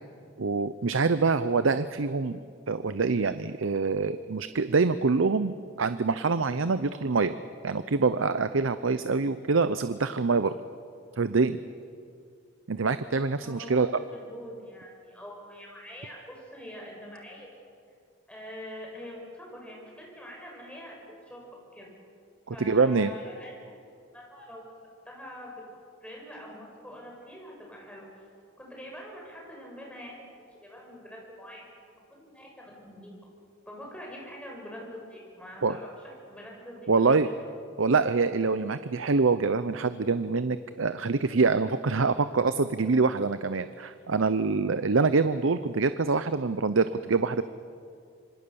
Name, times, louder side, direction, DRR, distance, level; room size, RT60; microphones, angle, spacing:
voice 1, 0.4-2.4 2.7-7.3 7.6-10.6 11.2-11.6 12.7-13.9 22.5-23.1 35.6-35.8 36.9-37.3 37.8-47.4, right 4 dB, 75° right, 12 dB, 0.7 m, -25 dB
voice 2, 13.4-17.5 18.3-21.0 21.3-21.4 21.7-21.9 22.5-24.6 25.1-25.6 26.0-28.2 28.6-30.3 30.6-31.7 32.1-33.1 33.7-35.9 36.3-37.4, equal, 5° left, -2 dB, 6.7 m, -44 dB
27.0 x 25.0 x 7.0 m, 2.3 s
head